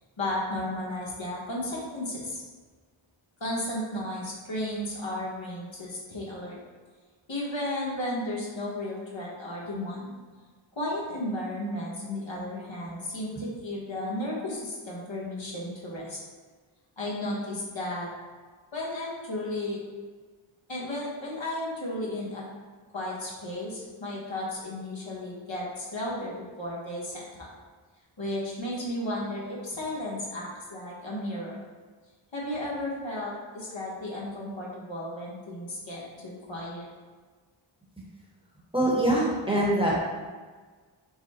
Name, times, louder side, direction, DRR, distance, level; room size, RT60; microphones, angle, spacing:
voice 1, 0.2-2.4 3.4-6.6 7.3-10.2 10.8-16.2 17.0-18.1 18.7-19.8 20.7-22.4 22.9-27.5 28.2-31.6 32.3-36.9, left 1 dB, 65° left, -5 dB, 1.2 m, -34 dB
voice 2, 38.7-40.0, right 1 dB, 10° right, -5 dB, 1.1 m, -23 dB
5.4 x 2.1 x 4.1 m, 1.4 s
wide cardioid pair, 55°, 50 cm